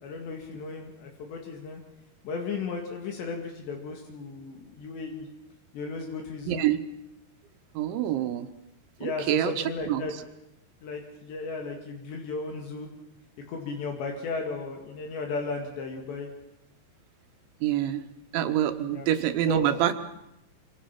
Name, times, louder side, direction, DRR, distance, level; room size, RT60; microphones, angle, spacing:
voice 1, 0.0-1.8 2.2-5.3 5.7-6.6 9.0-10.1 10.8-12.9 13.5-16.3 18.9-19.1 19.5-19.8, left 4 dB, 70° left, 2 dB, 4.4 m, -35 dB
voice 2, 6.5-6.8 7.8-8.5 9.0-9.5 9.9-10.0 17.6-18.0 18.3-19.9, right 11 dB, 80° right, 8 dB, 3.6 m, -26 dB
25.5 x 25.5 x 5.9 m, 0.84 s
omnidirectional pair, 5.3 m